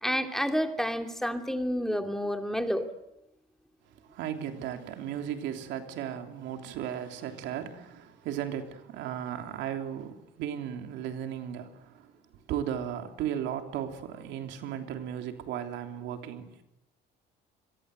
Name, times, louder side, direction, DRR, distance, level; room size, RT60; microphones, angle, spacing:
voice 1, 0.0-2.9, equal, ahead, 2.8 m, -29 dB
voice 2, 4.0-12.1 12.5-16.6, right 9 dB, 80° right, 3.2 m, -36 dB
26.5 x 22.5 x 7.9 m
supercardioid pair, 90°, 19 cm